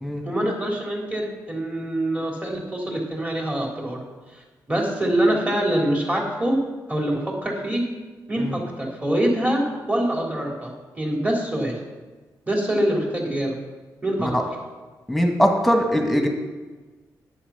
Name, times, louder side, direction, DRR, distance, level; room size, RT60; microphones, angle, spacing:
voice 1, 0.3-4.0 4.7-6.6 6.9-7.8 8.3-10.7 10.9-11.8 12.5-13.6 14.0-14.3, right 1 dB, 20° right, -1 dB, 3.4 m, -24 dB
voice 2, 15.1-16.3, equal, ahead, 2 dB, 2.0 m, -21 dB
10.0 x 8.3 x 5.8 m, 1.3 s
cardioid pair, 55°, 8 cm